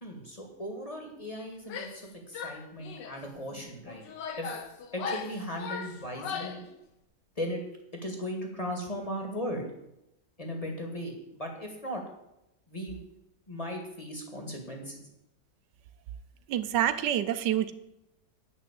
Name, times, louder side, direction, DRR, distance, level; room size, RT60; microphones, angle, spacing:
voice 1, 0.0-4.0 4.4-4.5 4.9-6.6 7.4-7.6 8.0-9.7 10.4-12.0 12.7-13.0 13.5-15.0, equal, 20° left, 1 dB, 2.1 m, -37 dB
Female speech woman speaking / Yell, 1.6-2.1 2.3-3.2 3.8-6.7, left 6 dB, 90° left, 1.6 m, -38 dB
voice 2, 16.5-17.7, right 11 dB, 85° right, 12 dB, 1.4 m, -27 dB
9.4 x 6.1 x 8.4 m, 0.87 s
omnidirectional pair, 1.8 m